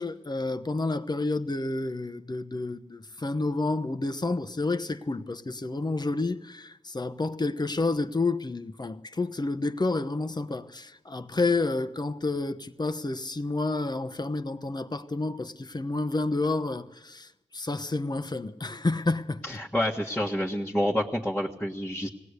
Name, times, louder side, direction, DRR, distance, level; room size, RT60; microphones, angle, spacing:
voice 1, 0.0-19.4, left 3 dB, 30° left, 1.0 m, -30 dB
voice 2, 19.4-22.1, equal, 10° left, 1.5 m, -28 dB
19.5 x 17.5 x 8.2 m
cardioid pair, 55°, 13 cm